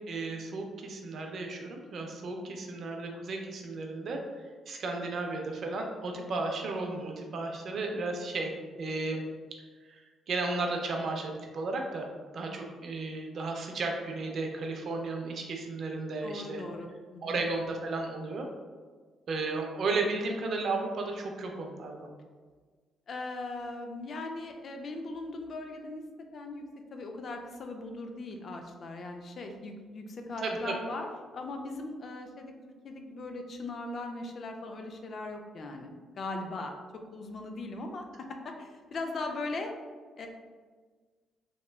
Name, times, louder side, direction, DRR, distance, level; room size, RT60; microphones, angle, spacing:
voice 1, 0.1-4.2 4.7-8.5 8.8-9.2 9.9-10.0 10.3-12.1 12.3-16.6 17.2-18.5 19.3-22.1 30.4-30.7, right 3 dB, 60° right, 2 dB, 0.4 m, -34 dB
voice 2, 16.2-17.4 23.1-26.0 26.3-26.6 26.9-32.5 32.8-36.7 37.1-39.7 40.2-40.3, left 2 dB, 50° left, 4 dB, 0.3 m, -39 dB
2.9 x 2.2 x 2.2 m, 1.5 s
cardioid pair, 90°, 0 cm